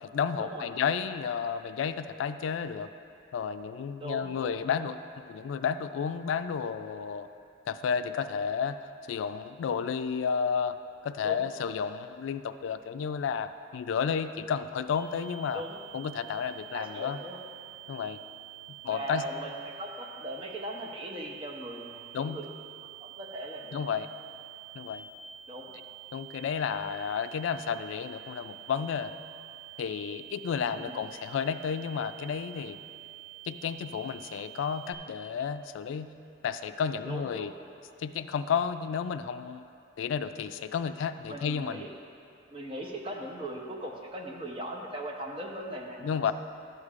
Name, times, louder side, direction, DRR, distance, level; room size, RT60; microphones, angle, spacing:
voice 1, 0.0-2.9 3.3-5.0 5.3-7.3 7.7-8.8 9.1-10.8 11.0-15.6 15.9-17.2 17.9-18.2 18.8-19.2 22.1-22.4 23.7-24.1 24.7-25.0 26.1-29.1 29.8-32.8 33.5-36.1 36.4-37.5 38.0-39.6 40.0-41.9 46.0-46.3, left 7 dB, 85° left, 10 dB, 0.3 m, -32 dB
voice 2, 4.0-4.6 11.2-11.4 15.5-15.8 16.7-17.4 18.9-22.4 23.0-23.8 25.5-25.7 30.8-31.0 37.0-37.5 41.3-41.9 42.5-46.3, right 1 dB, 30° right, -1 dB, 0.7 m, -39 dB
sound 1, 14.9-34.9, right 13 dB, 55° left, 1.2 m, -48 dB
12.0 x 8.0 x 2.4 m, 2.5 s
head